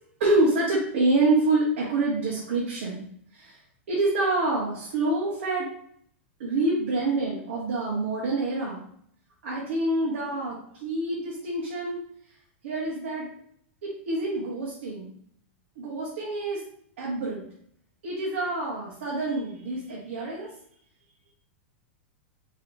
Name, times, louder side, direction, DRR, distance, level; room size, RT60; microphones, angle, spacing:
voice 1, 0.2-3.0 3.3-3.6 3.9-5.7 6.4-8.8 9.4-12.0 12.6-13.3 13.8-15.1 15.8-16.6 17.0-17.4 18.0-20.5, right 2 dB, 65° right, -6 dB, 1.4 m, -26 dB
4.9 x 3.1 x 2.8 m, 0.64 s
supercardioid pair, 175°, 7 cm